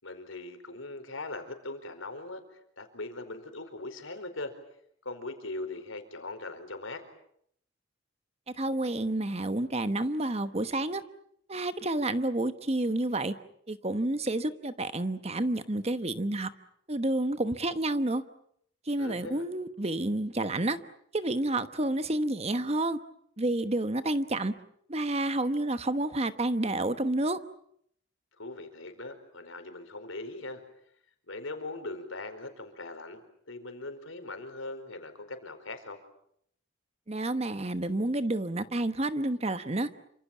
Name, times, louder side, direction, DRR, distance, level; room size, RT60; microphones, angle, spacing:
voice 1, 0.0-4.5 5.0-7.0 19.0-19.5 28.4-30.6 31.3-36.0, left 2 dB, 85° left, 8 dB, 4.6 m, -40 dB
voice 2, 8.6-11.0 11.5-13.3 13.7-16.5 16.9-18.2 18.9-20.8 21.1-23.0 23.4-24.5 24.9-27.4 37.1-39.9, right 2 dB, 30° right, 11 dB, 1.1 m, -29 dB
28.0 x 25.5 x 7.2 m, 0.70 s
head